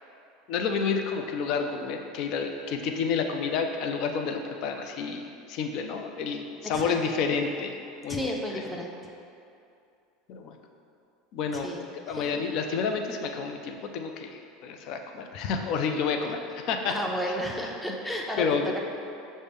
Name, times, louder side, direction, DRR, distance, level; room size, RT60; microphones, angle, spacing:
voice 1, 0.5-7.8 8.0-8.6 10.3-10.6 11.3-11.7 12.1-16.9 17.2-17.3 18.4-18.8, left 5 dB, 60° left, 5 dB, 0.4 m, -30 dB
voice 2, 8.1-9.0 11.5-12.4 16.9-18.8, equal, 5° left, 0 dB, 0.6 m, -33 dB
6.3 x 2.1 x 3.4 m, 2.6 s
supercardioid pair, 105°, 0 cm